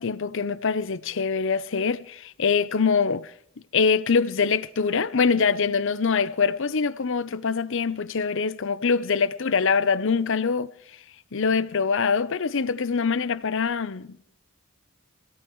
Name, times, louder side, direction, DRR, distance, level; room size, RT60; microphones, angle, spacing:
voice 1, 0.0-3.3 3.7-10.7 11.3-14.4, left 5 dB, 65° left, 0.7 m, -24 dB
24.0 x 17.5 x 3.1 m
head